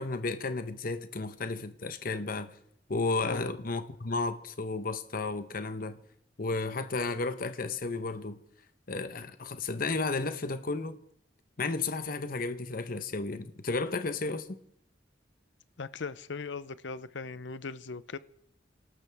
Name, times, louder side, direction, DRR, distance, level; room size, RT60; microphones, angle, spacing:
voice 1, 0.0-2.5 2.9-6.0 6.4-8.4 8.9-11.0 11.6-14.6, left 3 dB, 50° left, 1.0 m, -33 dB
voice 2, 15.8-18.2, left 4 dB, 80° left, 0.7 m, -39 dB
29.0 x 12.5 x 3.5 m
head